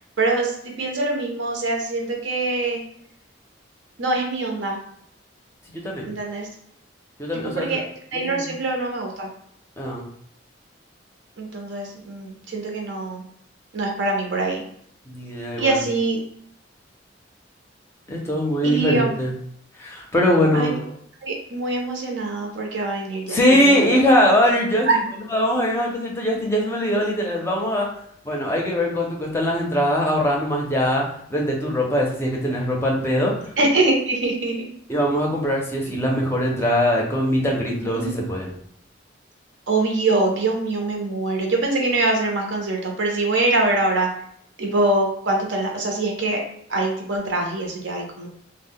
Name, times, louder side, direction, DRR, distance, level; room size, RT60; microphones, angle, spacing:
voice 1, 0.2-2.8 4.0-4.8 6.0-6.5 7.3-7.8 8.1-9.3 11.4-13.2 13.7-14.6 15.6-16.2 18.6-19.1 20.5-20.8 21.2-23.4 23.6-24.0 24.9-25.0 33.6-34.7 37.8-38.2 39.7-44.1 44.6-46.4 46.7-48.3, right 2 dB, 75° right, 1 dB, 0.6 m, -24 dB
voice 2, 5.7-6.1 7.2-7.8 8.1-8.5 9.8-10.1 15.1-15.8 18.1-19.3 19.8-20.8 23.3-25.0 25.3-27.9 28.2-31.0 31.3-33.5 34.9-38.5, equal, 15° left, -2 dB, 0.5 m, -21 dB
2.1 x 2.0 x 3.5 m, 0.68 s
head